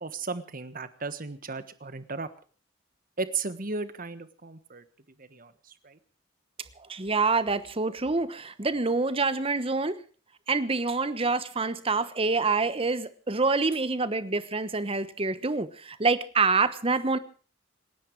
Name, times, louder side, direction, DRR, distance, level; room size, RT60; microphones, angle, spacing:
voice 1, 0.0-2.3 3.2-4.8 5.2-5.5 5.8-6.0, right 4 dB, 45° right, 12 dB, 1.4 m, -35 dB
voice 2, 6.9-10.0 10.5-17.2, right 3 dB, 30° right, 13 dB, 1.1 m, -26 dB
27.0 x 10.5 x 4.7 m, 0.40 s
head